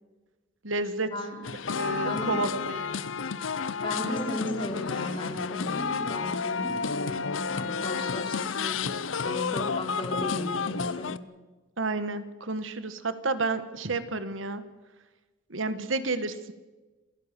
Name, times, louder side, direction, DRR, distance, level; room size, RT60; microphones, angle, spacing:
voice 1, 0.6-1.1 1.7-2.9 11.8-14.6 15.5-16.5, right 3 dB, 80° right, 12 dB, 1.5 m, -30 dB
sound 1, 1.4-11.2, left 5 dB, 75° left, 0.7 m, -31 dB
voice 2, 2.0-2.4 3.8-8.8 9.2-11.1, left 1 dB, 25° left, -1 dB, 5.0 m, -35 dB
28.0 x 15.5 x 6.8 m, 1.2 s
head